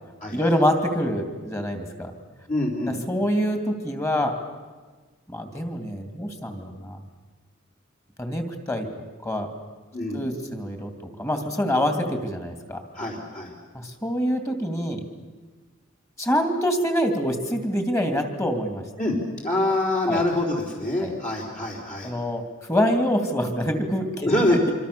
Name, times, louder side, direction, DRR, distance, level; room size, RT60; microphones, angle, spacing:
voice 1, 0.3-2.1 2.9-4.4 5.3-7.0 8.2-8.9 9.2-9.5 10.1-10.9 11.2-12.8 13.7-15.0 16.2-18.8 20.1-20.2 21.0-21.1 22.0-24.7, equal, 15° left, 6 dB, 2.8 m, -25 dB
voice 2, 2.5-2.9 9.9-10.2 12.9-13.5 19.0-19.2 19.4-22.1 24.2-24.6, left 1 dB, 40° left, -3 dB, 4.2 m, -25 dB
26.0 x 25.5 x 7.0 m, 1.3 s
head